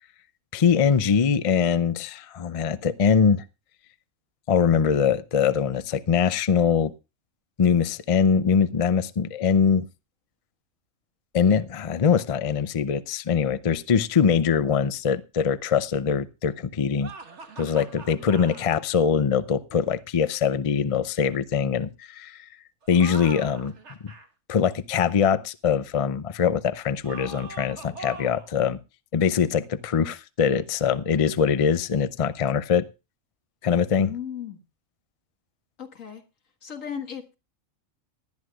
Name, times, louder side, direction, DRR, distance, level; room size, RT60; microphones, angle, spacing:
voice 1, 0.5-3.4 4.5-6.9 7.6-9.8 11.3-17.1 17.6-22.4 22.9-23.7 24.0-24.1 24.5-28.8 29.1-32.8 33.6-34.1, left 6 dB, 40° left, 0.5 m, -22 dB
sound 1, 17.0-18.7 22.8-24.3 27.0-28.5, right 4 dB, 60° right, 1.8 m, -42 dB
voice 2, 34.0-34.6 35.8-36.2 36.6-37.3, left 8 dB, 80° left, 2.1 m, -36 dB
19.0 x 11.5 x 2.4 m
omnidirectional pair, 1.3 m